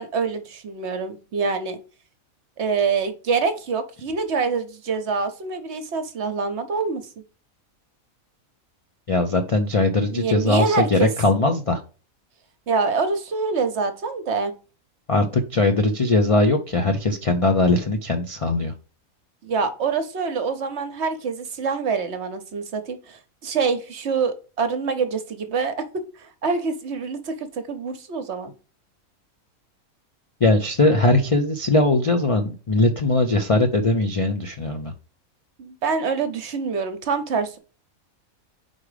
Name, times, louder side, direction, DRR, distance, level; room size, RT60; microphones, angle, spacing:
voice 1, 0.0-1.8 2.6-7.0 10.1-11.1 12.7-14.5 19.4-25.8 26.2-28.5 35.6-37.6, right 5 dB, 55° right, 9 dB, 1.0 m, -25 dB
voice 2, 9.1-11.8 15.1-18.7 30.4-34.9, left 2 dB, 65° left, 5 dB, 0.3 m, -20 dB
4.9 x 4.1 x 4.8 m, 0.36 s
omnidirectional pair, 1.5 m